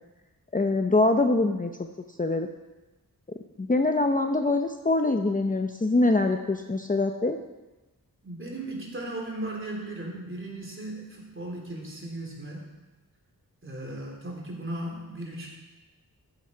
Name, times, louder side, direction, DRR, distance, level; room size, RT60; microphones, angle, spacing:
voice 1, 0.5-1.7 2.2-2.5 3.6-7.4, left 2 dB, 20° left, 5 dB, 0.7 m, -24 dB
voice 2, 8.2-12.7 13.6-15.5, right 1 dB, 35° right, -1 dB, 3.4 m, -36 dB
14.5 x 7.9 x 5.7 m, 1.1 s
wide cardioid pair, 90°, 37 cm